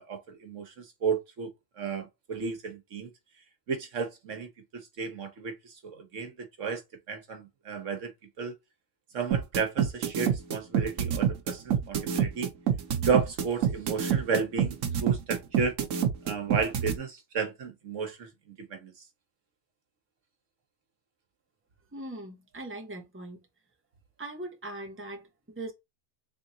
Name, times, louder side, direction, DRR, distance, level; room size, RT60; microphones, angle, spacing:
voice 1, 0.0-1.5 1.8-3.1 3.7-6.8 7.1-8.1 8.4-8.5 9.1-12.5 13.0-15.8 16.2-18.3 18.7-18.9, right 5 dB, 70° right, 1.3 m, -33 dB
sound 1, 9.3-16.9, right 8 dB, 90° right, 1.2 m, -26 dB
voice 2, 21.9-23.4 24.2-25.7, right 2 dB, 10° right, 1.0 m, -40 dB
3.7 x 3.3 x 2.7 m
omnidirectional pair, 1.3 m